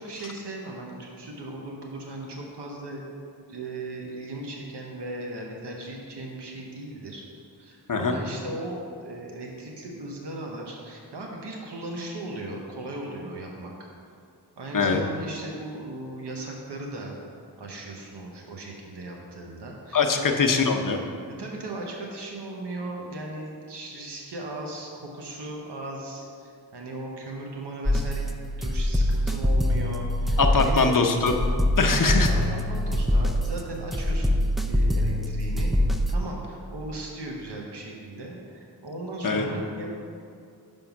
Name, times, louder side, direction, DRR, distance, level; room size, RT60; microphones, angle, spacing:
voice 1, 0.0-3.0 3.5-7.3 7.5-13.9 14.6-17.1 17.6-20.4 21.3-30.9 31.8-35.7 36.1-39.9, right 2 dB, 85° right, -1 dB, 0.9 m, -37 dB
voice 2, 19.9-21.0 30.4-31.3 31.8-32.3 39.2-39.5, left 4 dB, 55° left, 4 dB, 0.7 m, -22 dB
sound 1, 27.9-36.2, left 1 dB, ahead, 0.4 m, -24 dB
5.4 x 5.2 x 5.9 m, 2.4 s
wide cardioid pair, 55°, 40 cm